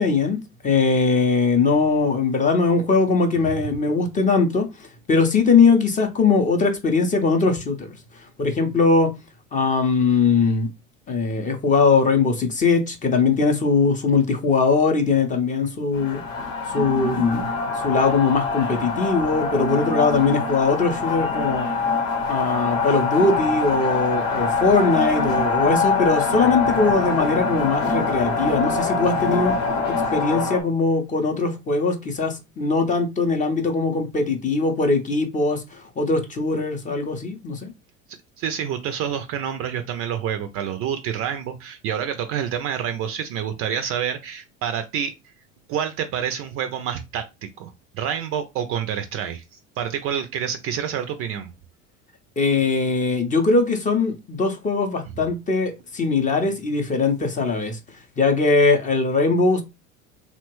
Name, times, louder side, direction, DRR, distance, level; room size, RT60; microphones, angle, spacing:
voice 1, 0.0-7.9 8.4-9.1 9.5-10.7 11.1-16.2 16.7-21.7 22.3-29.6 29.9-37.7 52.4-57.8 58.2-59.6, left 4 dB, 20° left, 0.5 m, -21 dB
sound 1, 15.9-30.6, left 4 dB, 60° left, 0.8 m, -24 dB
voice 2, 38.4-45.1 45.7-49.4 49.8-51.5, right 8 dB, 35° right, 0.4 m, -28 dB
2.9 x 2.1 x 3.0 m
hypercardioid pair, 80°, 41 cm